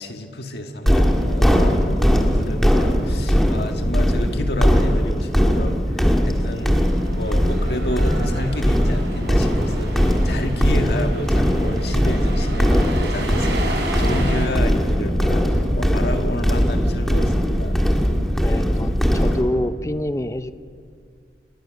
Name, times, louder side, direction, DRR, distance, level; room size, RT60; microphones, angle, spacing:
voice 1, 0.0-17.8, left 1 dB, 65° left, 4 dB, 1.9 m, -30 dB
sound 1, 0.9-19.4, equal, ahead, 1.8 m, -19 dB
sound 2, 6.4-14.5, right 1 dB, 70° right, 5.4 m, -32 dB
voice 2, 18.4-20.5, left 1 dB, 15° left, 12 dB, 0.7 m, -26 dB
27.5 x 20.5 x 6.5 m, 2.3 s
head